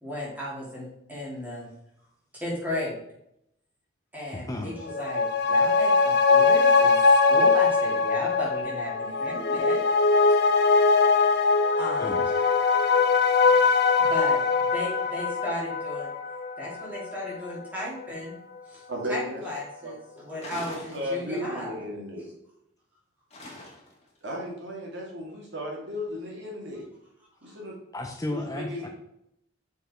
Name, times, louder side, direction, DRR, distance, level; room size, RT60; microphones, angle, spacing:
voice 1, 0.0-1.7 2.3-3.0 4.1-6.9 7.3-9.8 11.8-12.3 14.0-16.1 16.6-18.4 18.7-18.8 19.1-21.7 27.4-27.5, left 1 dB, 10° right, -6 dB, 2.9 m, -35 dB
voice 2, 4.3-4.7 12.0-12.2 27.9-28.9, left 1 dB, 20° left, 3 dB, 0.6 m, -33 dB
sound 1, 4.8-17.7 18.0-18.1, left 4 dB, 55° left, 0.7 m, -22 dB
voice 3, 18.9-19.4 19.8-19.9 20.6-22.3 24.2-26.8 27.4-27.7 28.3-28.8, equal, 65° right, -2 dB, 2.2 m, -35 dB
sound 2, 20.4-21.6 23.3-24.1, left 2 dB, 35° left, 1.7 m, -42 dB
7.1 x 4.9 x 4.5 m, 0.78 s
head